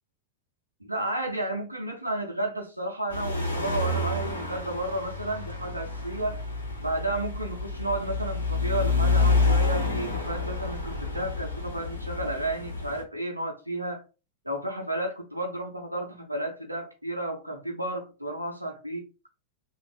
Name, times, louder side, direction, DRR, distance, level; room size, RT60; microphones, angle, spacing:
voice 1, 0.8-6.4 6.8-14.0 14.4-19.1, right 1 dB, 85° right, 0.5 m, -32 dB
sound 1, 3.1-13.0, left 3 dB, 85° left, 0.9 m, -28 dB
3.3 x 2.4 x 2.3 m
figure-of-eight pair, 90°, 0 cm